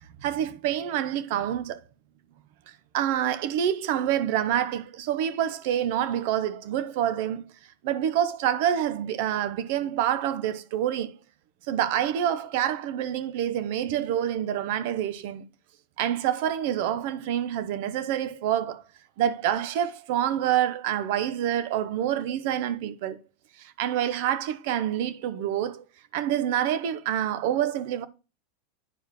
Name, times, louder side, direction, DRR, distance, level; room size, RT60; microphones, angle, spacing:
voice 1, 0.2-1.8 2.9-7.5 7.8-11.1 11.7-15.4 16.0-18.8 19.2-23.2 23.6-25.8 26.1-28.1, right 10 dB, 65° right, 0.8 m, -27 dB
9.8 x 4.7 x 3.1 m
hypercardioid pair, 110°, 0 cm